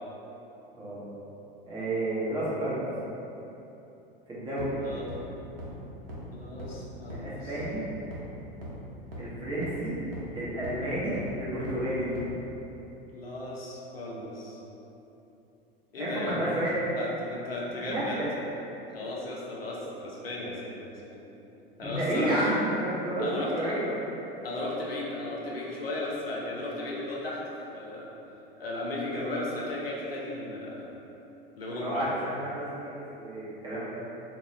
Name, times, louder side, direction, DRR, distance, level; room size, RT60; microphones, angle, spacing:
voice 1, 1.7-2.9 4.3-4.8 7.1-7.8 9.2-10.0 10.3-12.1 16.0-16.7 17.8-18.3 21.8-23.9 31.8-33.9, right 1 dB, 15° right, -9 dB, 1.0 m, -31 dB
sound 1, 4.6-4.7 5.1-5.2 5.6-5.7 6.1-6.2 6.6-6.7 7.1-7.2 7.6-7.7 8.1-8.2 8.6-8.7 9.1-9.2 9.6-9.7 10.1-10.2 10.6-10.7 11.1-11.2 11.6-11.7 12.1-12.2, equal, 80° right, 0.8 m, -39 dB
voice 2, 6.3-7.5 13.1-14.6 15.9-16.5 16.9-18.2 18.9-21.2 21.8-22.3 23.2-23.7 24.4-27.4 27.7-28.1 28.6-30.9 31.6-32.2, left 1 dB, 90° left, -4 dB, 0.6 m, -35 dB
2.7 x 2.3 x 3.1 m, 3.0 s
figure-of-eight pair, 85°, 29 cm